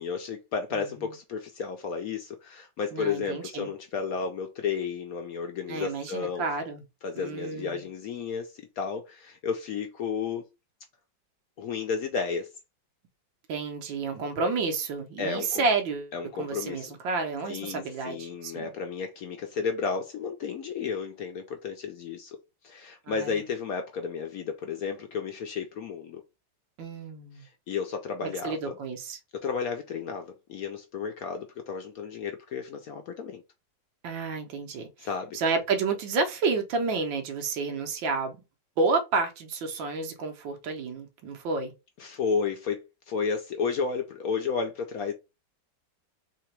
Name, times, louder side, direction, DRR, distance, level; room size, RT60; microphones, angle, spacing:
voice 1, 0.0-6.4 7.0-10.4 11.6-12.5 15.2-15.6 16.1-16.9 17.5-22.4 22.6-26.2 27.7-28.8 29.3-33.4 35.0-35.4 42.0-45.1, left 5 dB, 65° left, 0.9 m, -32 dB
voice 2, 0.7-1.1 2.9-3.7 5.7-6.8 7.1-7.8 13.5-16.1 16.4-18.7 23.1-23.4 26.8-27.4 28.2-29.2 34.0-35.1 35.3-38.4 38.8-41.7, right 4 dB, 85° right, 1.7 m, -30 dB
3.7 x 2.9 x 4.5 m
omnidirectional pair, 2.0 m